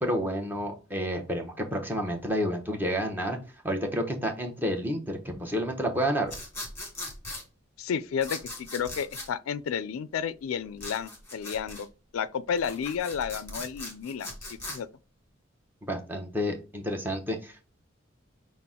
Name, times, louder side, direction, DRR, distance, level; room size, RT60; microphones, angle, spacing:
voice 1, 0.0-3.4 3.6-6.3 15.9-17.7, equal, 10° right, 0.7 m, -30 dB
sound 1, 6.3-7.4 8.2-9.3 10.8-11.9 12.5-14.8, left 2 dB, 10° left, 1.3 m, -39 dB
voice 2, 7.8-11.9 12.1-14.3 14.7-14.9, left 7 dB, 90° left, 0.4 m, -31 dB
5.7 x 2.1 x 3.6 m
head